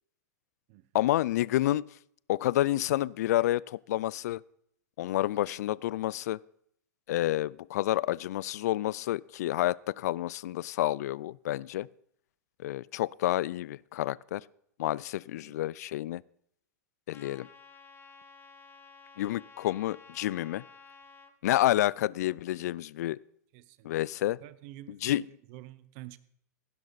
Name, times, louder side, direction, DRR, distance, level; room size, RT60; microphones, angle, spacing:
voice 1, 0.9-1.8 2.3-4.4 5.0-6.4 7.1-11.9 12.6-14.4 14.8-16.2 17.1-17.5 19.2-20.6 21.4-23.2 23.8-24.4 24.9-25.2, left 14 dB, 70° left, 0.4 m, -29 dB
voice 2, 15.4-15.7 23.5-23.9 24.4-25.2 25.5-26.2, right 15 dB, 50° right, 0.9 m, -48 dB
Trumpet, 17.1-21.3, left 4 dB, 20° left, 1.5 m, -53 dB
16.5 x 11.5 x 4.1 m
hypercardioid pair, 115°, 9 cm